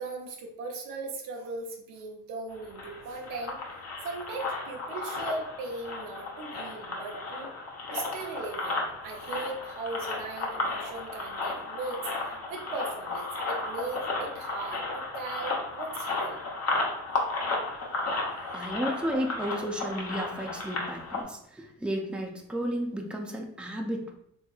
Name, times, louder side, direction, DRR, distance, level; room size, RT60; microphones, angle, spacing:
voice 1, 0.0-3.6 4.0-7.5 7.9-16.4 18.3-19.0, right 3 dB, 90° right, 1 dB, 0.8 m, -38 dB
sound 1, 2.5-21.2, left 2 dB, 50° left, 0.9 m, -34 dB
voice 2, 18.5-24.1, equal, 5° right, 1 dB, 0.5 m, -33 dB
3.4 x 2.9 x 2.4 m, 0.71 s
cardioid pair, 80°, 33 cm